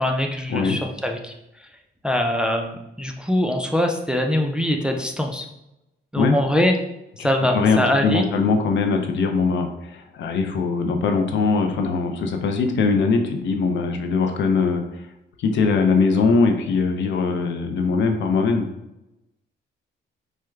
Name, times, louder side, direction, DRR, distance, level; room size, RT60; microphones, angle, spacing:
voice 1, 0.0-1.3 2.0-5.5 6.1-6.7 7.2-8.3, left 1 dB, 5° right, 3 dB, 0.3 m, -23 dB
voice 2, 7.5-15.0 15.4-18.7, left 4 dB, 65° left, 5 dB, 0.5 m, -21 dB
4.6 x 2.1 x 2.3 m, 0.89 s
cardioid pair, 90°, 20 cm